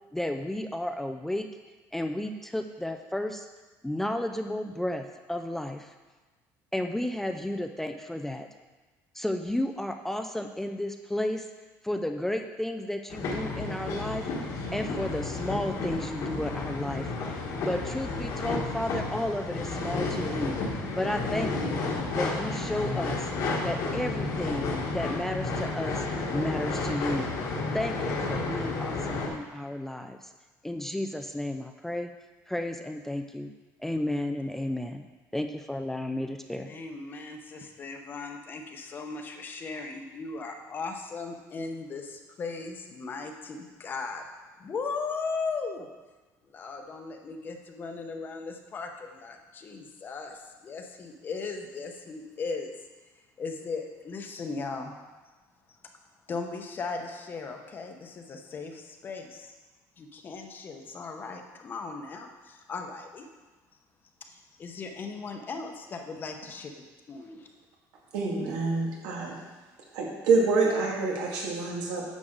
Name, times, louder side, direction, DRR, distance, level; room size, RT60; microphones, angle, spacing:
voice 1, 0.1-1.5 1.9-3.5 3.8-6.0 6.7-8.5 9.1-11.5 11.8-21.8 22.1-23.3 23.6-26.1 26.3-27.3 27.7-30.3 30.6-32.1 32.5-33.5 33.8-35.0 35.3-36.7, left 1 dB, 5° left, 5 dB, 0.4 m, -33 dB
sound 1, 13.1-29.3, left 3 dB, 60° left, 1.4 m, -31 dB
voice 2, 36.7-44.2 44.6-45.9 46.5-52.7 53.4-54.9 56.3-59.5 60.0-63.3 64.3-66.7 67.1-67.5, left 4 dB, 30° left, 4 dB, 0.8 m, -37 dB
voice 3, 68.1-69.4 69.9-72.0, right 3 dB, 85° right, -2 dB, 2.2 m, -27 dB
9.8 x 6.3 x 3.9 m, 1.3 s
cardioid pair, 145°, 7 cm